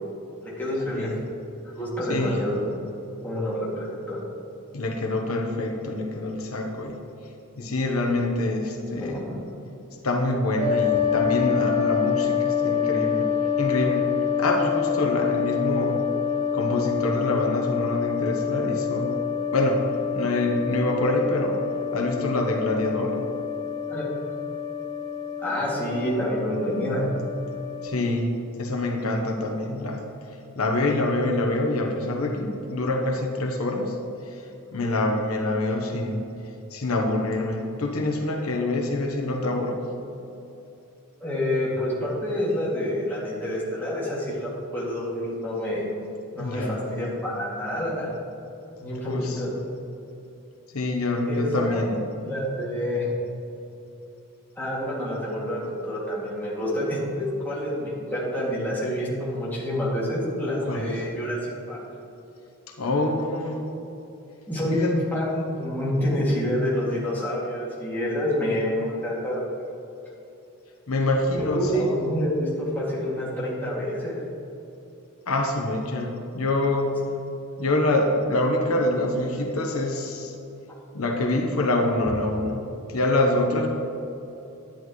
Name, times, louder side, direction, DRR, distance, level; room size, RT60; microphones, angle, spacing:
voice 1, 0.4-1.1 1.7-2.7 3.2-4.2 9.0-9.4 23.9-24.1 25.4-27.0 41.2-45.8 46.4-48.1 48.8-49.5 51.3-51.8 52.2-53.1 54.6-61.8 64.5-69.4 71.3-74.2, equal, 10° left, -7 dB, 2.4 m, -28 dB
voice 2, 2.1-2.4 4.7-7.0 7.6-9.2 10.0-13.3 13.6-14.1 14.4-16.0 16.5-19.2 19.5-19.8 20.1-21.6 21.9-23.3 27.8-28.3 28.6-30.0 30.5-33.9 34.7-36.3 36.7-39.8 46.4-46.7 49.0-49.4 50.7-52.0 60.7-60.9 62.8-63.6 64.8-64.9 70.9-71.8 75.3-76.9 77.6-80.3 80.9-82.6 82.9-83.7, left 2 dB, 80° left, 2 dB, 1.0 m, -25 dB
sound 1, 10.6-27.9, left 7 dB, 30° right, 1.7 m, -27 dB
10.5 x 10.0 x 3.2 m, 2.8 s
head